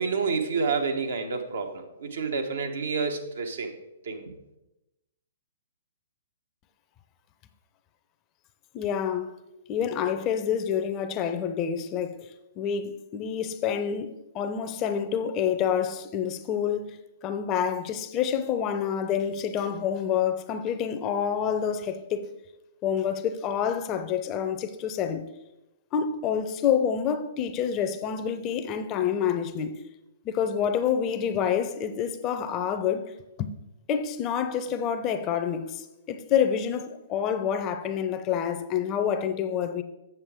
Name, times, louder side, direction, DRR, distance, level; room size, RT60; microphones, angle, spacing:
voice 1, 0.0-3.7 4.0-4.2, right 5 dB, 70° right, 1.1 m, -29 dB
voice 2, 8.7-9.4 9.7-12.3 12.6-17.0 17.2-22.3 22.8-25.3 25.9-29.8 30.2-33.1 33.4-33.5 33.9-39.8, left 8 dB, 30° left, 0.6 m, -28 dB
8.1 x 6.9 x 3.5 m
figure-of-eight pair, 120°, 0 cm